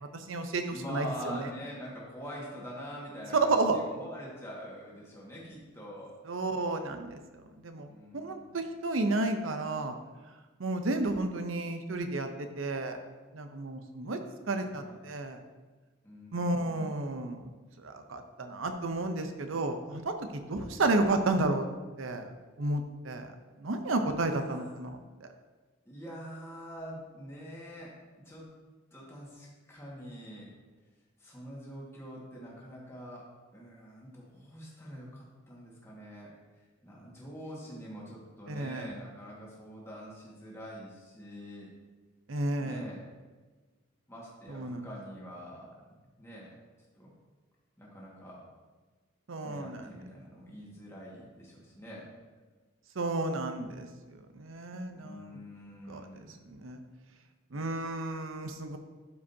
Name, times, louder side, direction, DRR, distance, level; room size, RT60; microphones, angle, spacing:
voice 1, 0.1-1.5 3.5-3.8 6.3-7.9 8.1-10.0 10.6-13.0 13.3-14.2 14.5-15.4 16.3-17.5 17.8-21.7 22.0-22.3 22.6-23.3 23.6-25.3 38.5-38.9 42.3-42.8 44.5-44.9 49.3-49.8 53.0-53.9 54.3-55.4 55.9-56.0 56.5-56.8 57.5-58.8, right 2 dB, 90° right, 7 dB, 0.7 m, -32 dB
voice 2, 0.7-6.2 7.8-8.6 14.0-15.0 16.0-16.6 24.2-24.7 25.9-27.9 28.3-28.5 28.9-30.5 31.2-33.3 33.5-36.3 36.8-41.7 42.6-43.1 44.1-46.5 46.9-47.1 47.8-48.4 49.4-52.1 54.9-56.4, equal, 15° left, -5 dB, 1.8 m, -45 dB
11.5 x 5.2 x 2.8 m, 1.3 s
head